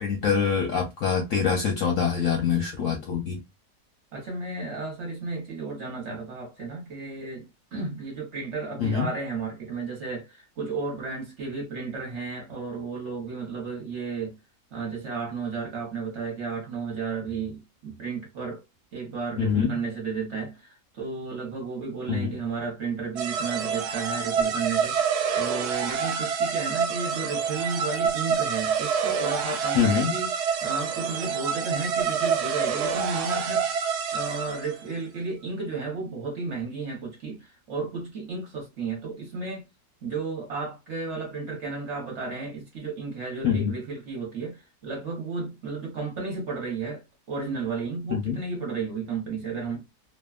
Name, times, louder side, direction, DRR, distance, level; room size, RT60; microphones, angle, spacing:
voice 1, 0.0-3.4 8.8-9.1 19.4-19.7 22.1-22.3 29.7-30.1 43.4-43.7 48.1-48.4, left 7 dB, 65° left, 0.8 m, -24 dB
voice 2, 4.1-14.4 14.7-18.6 18.9-25.1 25.3-30.4 30.6-33.7 34.1-39.7 40.0-49.8, right 4 dB, 50° right, 1.0 m, -33 dB
sound 1, 23.2-34.8, right 6 dB, 75° right, 1.1 m, -27 dB
2.8 x 2.2 x 2.3 m
omnidirectional pair, 1.8 m